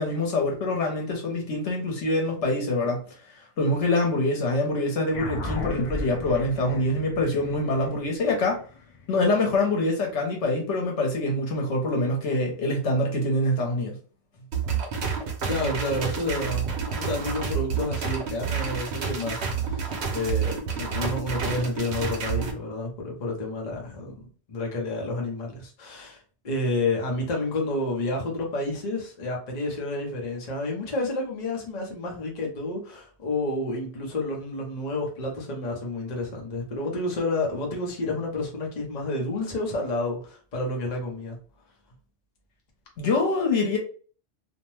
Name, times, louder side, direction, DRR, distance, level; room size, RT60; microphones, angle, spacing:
voice 1, 0.0-3.0 3.6-8.6 9.1-14.0 43.0-43.8, left 2 dB, 80° left, 1.1 m, -25 dB
sound 1, 5.1-9.9, left 3 dB, 60° left, 0.3 m, -36 dB
sound 2, 14.5-22.5, right 6 dB, 70° right, 0.9 m, -29 dB
voice 2, 15.5-24.1 24.5-26.2 26.4-41.4, left 2 dB, 45° left, 0.8 m, -30 dB
2.6 x 2.1 x 3.1 m
omnidirectional pair, 1.2 m